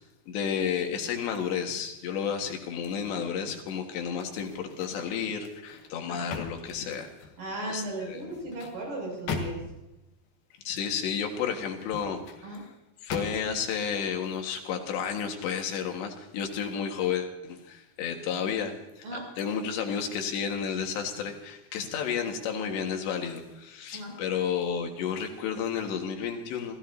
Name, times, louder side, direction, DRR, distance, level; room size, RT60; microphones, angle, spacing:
voice 1, 0.3-7.1 7.7-8.3 10.7-12.6 13.0-26.8, left 7 dB, 85° left, 3 dB, 3.9 m, -32 dB
sound 1, 4.4-5.1 5.5-7.4 8.2-9.9 11.7-12.4 13.1-13.7 14.2-14.4, left 4 dB, 65° left, 3.4 m, -39 dB
voice 2, 7.4-9.6 12.4-12.6 19.0-19.2 23.9-24.1, right 1 dB, 60° right, -1 dB, 8.5 m, -36 dB
27.0 x 15.5 x 2.8 m, 0.94 s
omnidirectional pair, 4.9 m